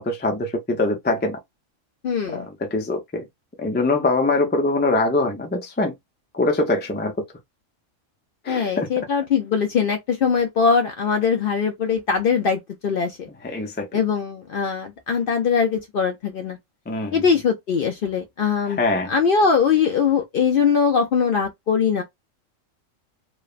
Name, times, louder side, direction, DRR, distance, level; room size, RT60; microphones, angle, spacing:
voice 1, 0.0-1.4 2.3-2.5 2.7-3.2 3.6-5.9 6.3-7.1 8.4-8.9 13.4-13.9 16.9-17.2 18.7-19.1, left 2 dB, 15° left, 0.3 m, -23 dB
voice 2, 2.0-2.5 8.5-13.3 13.9-16.6 17.1-18.8 19.1-22.0, left 6 dB, 60° left, 0.6 m, -21 dB
3.2 x 2.1 x 2.4 m
omnidirectional pair, 1.3 m